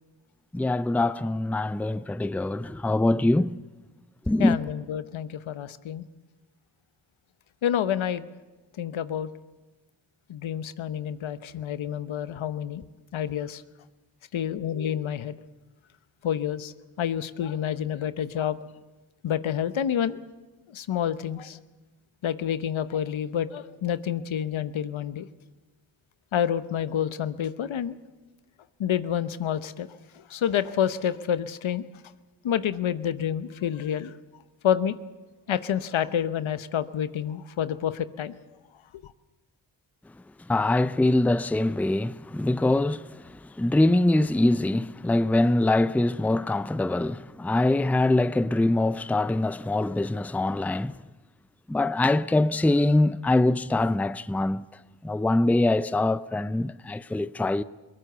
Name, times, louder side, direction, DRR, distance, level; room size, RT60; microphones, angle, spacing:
voice 1, 0.5-3.6 4.3-4.6 40.5-43.2 43.6-50.9 51.7-54.6 55.0-57.6, left 2 dB, 5° left, 0.6 m, -23 dB
voice 2, 4.4-6.0 7.6-8.3 8.8-9.3 10.3-12.8 13.1-13.6 14.3-15.4 16.2-16.7 17.0-18.6 19.2-20.2 20.7-21.6 22.2-25.3 26.3-28.0 28.8-29.9 30.3-31.8 32.4-34.1 34.6-34.9 35.5-38.4, left 9 dB, 70° left, 0.9 m, -28 dB
21.5 x 18.5 x 6.8 m
supercardioid pair, 40°, 49 cm